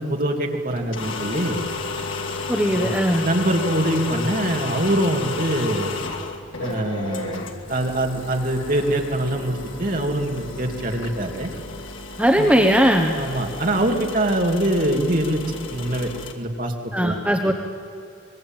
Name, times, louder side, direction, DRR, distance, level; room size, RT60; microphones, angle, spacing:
voice 1, 0.0-1.6 2.7-3.0 3.2-6.0 6.6-11.5 12.4-12.5 13.2-16.1 16.4-17.2, right 1 dB, 45° right, 2 dB, 2.8 m, -24 dB
sound 1, 0.8-16.3, left 3 dB, 80° left, 2.7 m, -32 dB
voice 2, 2.5-3.2 12.2-13.2 16.9-17.5, equal, 5° right, 2 dB, 1.2 m, -18 dB
25.5 x 21.5 x 9.1 m, 2.6 s
head